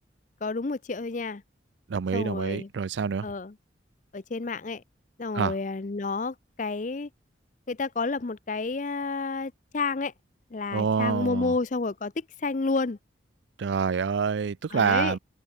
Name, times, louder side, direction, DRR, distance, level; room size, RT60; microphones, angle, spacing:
voice 1, 0.4-1.4 2.1-2.7 3.2-3.5 4.1-4.8 5.2-7.1 7.7-10.1 10.5-13.0 14.7-15.2, left 3 dB, 40° left, 0.6 m, -30 dB
voice 2, 1.9-3.3 5.3-5.5 10.7-11.5 13.6-15.2, right 6 dB, 75° right, 0.4 m, -26 dB
head